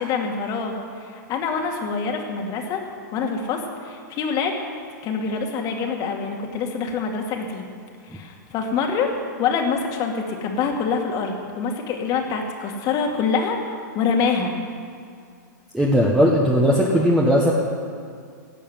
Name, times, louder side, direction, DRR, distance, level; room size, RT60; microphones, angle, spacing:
voice 1, 0.0-2.8 3.1-4.6 5.0-7.7 8.0-9.1 9.4-14.6, left 5 dB, 40° left, 3 dB, 2.3 m, -25 dB
voice 2, 15.7-17.5, equal, 5° right, -3 dB, 1.5 m, -18 dB
16.5 x 7.0 x 9.3 m, 2.2 s
hypercardioid pair, 120°, 10 cm